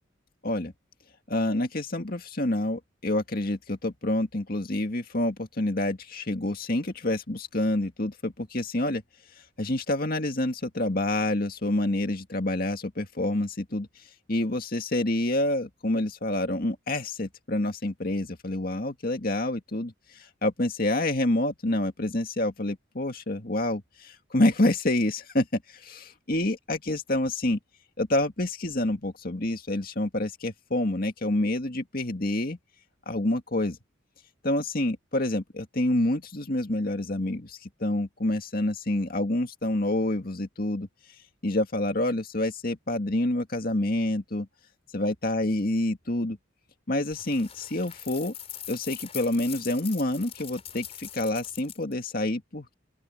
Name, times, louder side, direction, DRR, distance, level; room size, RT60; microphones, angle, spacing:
voice 1, 1.3-9.0 9.6-27.6 28.0-32.6 33.1-33.8 34.4-40.9 41.4-44.5 44.9-46.4 46.9-48.3 48.7-52.7, left 1 dB, 50° left, 2.2 m, -28 dB
sound 1, 47.1-51.9, left 10 dB, 30° left, 4.7 m, -42 dB
open air
head